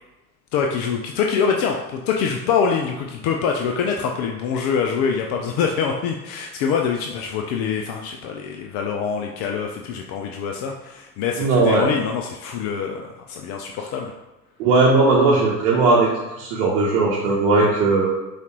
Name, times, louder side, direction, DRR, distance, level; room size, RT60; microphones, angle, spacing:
voice 1, 0.5-14.2, left 6 dB, 35° left, 2 dB, 0.4 m, -24 dB
voice 2, 11.4-11.8 14.6-16.1 16.4-18.1, right 3 dB, 60° right, -4 dB, 0.9 m, -17 dB
5.7 x 2.5 x 2.9 m, 1.0 s
figure-of-eight pair, 70°, 50 cm